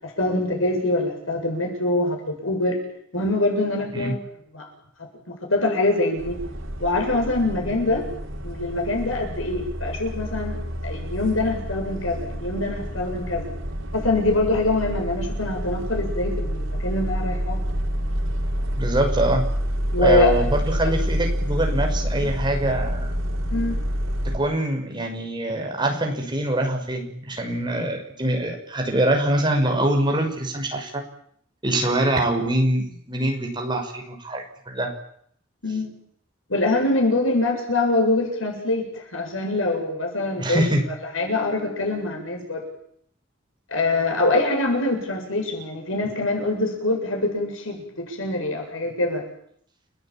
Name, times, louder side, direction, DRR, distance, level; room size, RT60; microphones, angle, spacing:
voice 1, 0.0-2.8 3.1-4.2 4.5-4.7 5.0-6.4 6.8-8.1 8.4-13.5 13.9-17.6 19.9-20.3 22.2-22.3 23.5-23.8 35.6-35.9 36.5-40.6 41.1-42.6 43.7-49.3, left 2 dB, 85° left, 1 dB, 7.9 m, -24 dB
sound 1, 6.2-24.4, equal, 85° right, 4.5 m, -28 dB
voice 2, 18.8-19.4 20.0-23.1 24.3-31.0 31.6-34.9 40.4-40.8, right 1 dB, 25° right, 2 dB, 6.0 m, -24 dB
30.0 x 18.0 x 9.1 m, 0.68 s
head